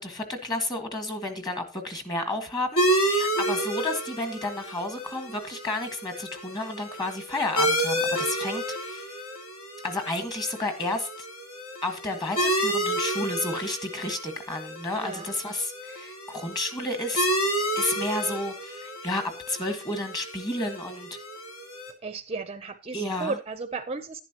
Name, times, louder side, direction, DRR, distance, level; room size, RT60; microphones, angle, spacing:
voice 1, 0.0-9.1 9.8-11.3 11.8-17.3 17.7-21.1 22.9-23.4, left 2 dB, 20° left, 1.6 m, -31 dB
sound 1, 2.8-21.9, right 1 dB, 70° left, 2.4 m, -30 dB
voice 2, 15.0-15.3 22.0-24.2, right 4 dB, 30° right, 0.6 m, -34 dB
11.0 x 10.5 x 2.9 m
head